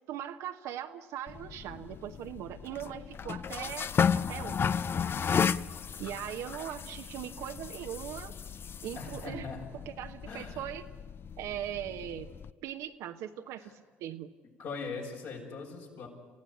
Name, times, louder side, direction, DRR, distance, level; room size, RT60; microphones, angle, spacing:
voice 1, 0.1-4.8 6.0-8.3 8.8-9.5 9.9-10.8 11.4-12.3 12.6-14.3, right 11 dB, 70° right, 5 dB, 1.0 m, -40 dB
sound 1, 1.3-12.5, left 7 dB, 40° left, 0.6 m, -34 dB
voice 2, 8.9-9.6 10.3-10.7 13.6-13.7 14.6-16.1, left 4 dB, 65° left, -1 dB, 6.5 m, -40 dB
27.5 x 15.0 x 9.7 m, 1.5 s
hypercardioid pair, 60°, 6 cm